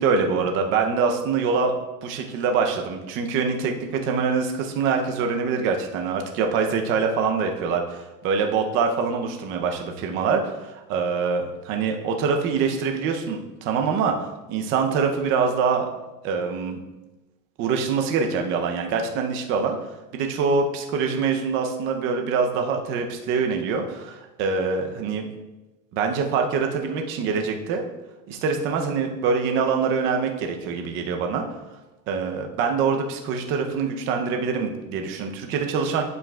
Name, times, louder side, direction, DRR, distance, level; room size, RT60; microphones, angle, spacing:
voice 1, 0.0-14.2 14.5-15.9 16.2-16.8 17.6-19.8 20.1-25.3 25.9-27.9 28.3-31.5 32.1-36.0, right 5 dB, 25° right, 3 dB, 0.5 m, -24 dB
8.6 x 7.0 x 2.2 m, 1.1 s
supercardioid pair, 150°, 46 cm